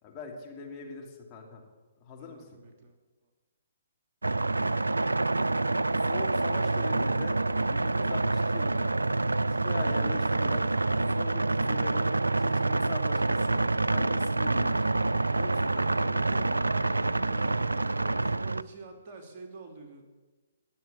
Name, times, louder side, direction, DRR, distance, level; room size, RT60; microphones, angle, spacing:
voice 1, 0.0-1.6 2.0-2.6 5.9-9.0 9.5-10.7 11.1-12.1 12.4-13.6 13.9-14.9 15.3-17.0, left 4 dB, 25° left, 0 dB, 3.0 m, -43 dB
voice 2, 2.2-3.0 3.2-3.3 17.2-20.1, right 4 dB, 35° right, 1 dB, 3.1 m, -47 dB
sound 1, 4.2-18.6, right 2 dB, 80° right, 0.4 m, -27 dB
20.5 x 8.1 x 8.5 m, 1.3 s
figure-of-eight pair, 130°, 0 cm